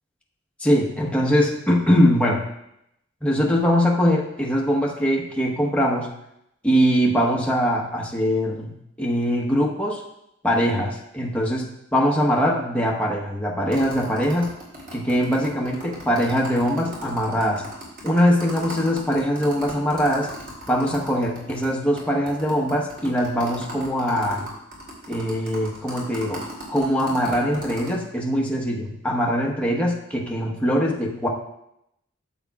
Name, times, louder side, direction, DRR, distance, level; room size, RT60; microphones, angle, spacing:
voice 1, 0.6-2.4 3.2-6.1 6.6-10.0 10.4-14.5 14.9-17.6 18.0-20.3 20.7-24.5 25.1-26.4 26.7-31.3, equal, 5° left, -2 dB, 1.1 m, -22 dB
sound 1, 13.7-21.7 22.0-22.1 22.3-27.9, equal, 50° right, 3.0 m, -37 dB
13.5 x 7.2 x 2.4 m, 0.80 s
head